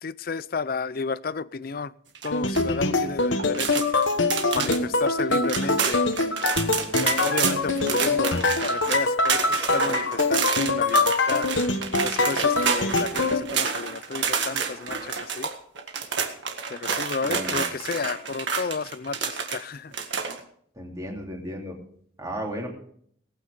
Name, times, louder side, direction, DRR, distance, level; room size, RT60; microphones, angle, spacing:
voice 1, 0.0-1.9 2.2-3.8 4.5-6.1 7.0-11.5 12.0-15.5 16.7-19.9, left 4 dB, 45° left, 0.5 m, -32 dB
sound 1, 2.2-2.6 3.4-4.8 5.2-5.3 5.5-19.6 19.9-20.4, right 6 dB, 65° right, 1.8 m, -29 dB
sound 2, 2.3-13.4, left 3 dB, 70° left, 1.3 m, -24 dB
voice 2, 17.2-17.7 20.7-21.8 22.2-22.7, equal, 15° right, 3.0 m, -34 dB
19.0 x 9.0 x 5.1 m
head